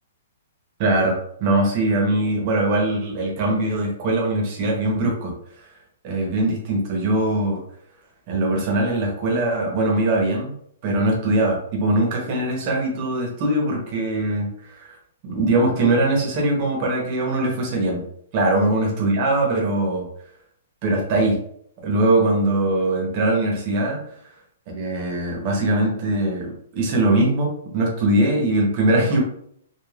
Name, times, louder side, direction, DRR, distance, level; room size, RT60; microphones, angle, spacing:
voice 1, 0.8-5.3 6.0-7.6 8.3-10.5 10.8-14.9 15.2-18.0 18.3-20.1 20.8-21.4 21.8-24.0 24.7-29.2, right 2 dB, 35° right, 0 dB, 0.8 m, -21 dB
3.3 x 2.3 x 2.3 m, 0.68 s
hypercardioid pair, 165°, 0 cm